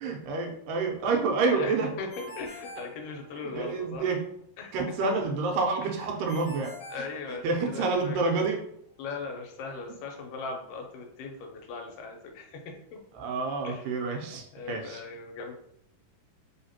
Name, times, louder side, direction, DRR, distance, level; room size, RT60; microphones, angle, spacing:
voice 1, 0.0-1.9 3.5-4.2 4.7-6.8 7.4-8.6 13.2-15.0, right 4 dB, 85° right, 1 dB, 2.4 m, -28 dB
voice 2, 1.5-4.1 4.6-4.8 5.8-5.9 6.9-8.5 9.0-13.0 13.6-13.9 14.5-15.5, left 4 dB, 85° left, 2 dB, 2.4 m, -39 dB
Ringtone, 2.1-3.7 6.3-7.9, right 1 dB, 60° left, 1.4 m, -46 dB
5.3 x 2.9 x 2.8 m, 0.71 s
omnidirectional pair, 3.8 m